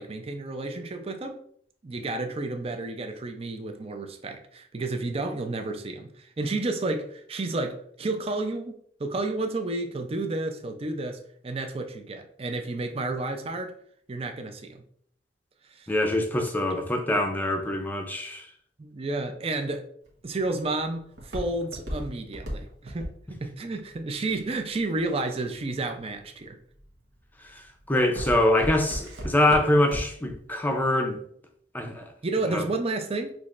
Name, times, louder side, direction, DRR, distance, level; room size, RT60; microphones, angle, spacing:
voice 1, 0.0-1.4 1.8-8.7 9.0-13.8 14.1-14.9 15.8-15.9 18.8-19.9 20.2-26.6 32.2-33.4, right 2 dB, 35° right, 0.5 m, -31 dB
voice 2, 15.9-18.5 27.5-31.2 31.7-32.0 32.5-32.6, left 1 dB, 10° left, 0.6 m, -24 dB
Walk footsteps, 20.0-25.2 25.8-26.2 26.7-27.1 27.4-30.3 30.7-30.8, equal, 75° right, 1.2 m, -35 dB
6.1 x 3.0 x 2.5 m
head